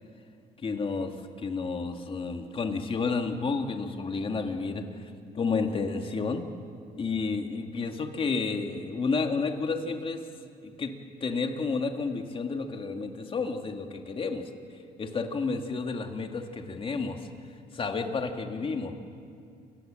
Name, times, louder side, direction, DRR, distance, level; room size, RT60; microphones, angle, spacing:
voice 1, 0.6-1.1 1.4-6.4 7.0-10.2 10.6-10.9 11.2-14.5 15.0-17.3 17.7-18.9, left 4 dB, 30° left, 5 dB, 2.1 m, -31 dB
28.5 x 17.0 x 7.7 m, 2.3 s
cardioid pair, 110°, 17 cm